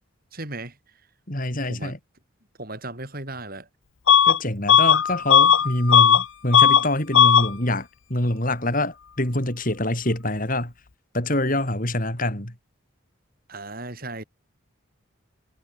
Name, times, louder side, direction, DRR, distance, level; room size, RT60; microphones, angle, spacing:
voice 1, 0.3-0.7 1.7-1.9 2.6-3.7 13.5-14.2, right 2 dB, 45° right, 7.0 m, -35 dB
voice 2, 1.3-2.0 4.3-10.7 11.1-12.5, left 1 dB, 40° left, 5.1 m, -25 dB
Bus / Alarm, 4.1-4.4 4.7-6.2 6.5-6.9 7.1-7.5, left 8 dB, 75° left, 0.8 m, -15 dB
head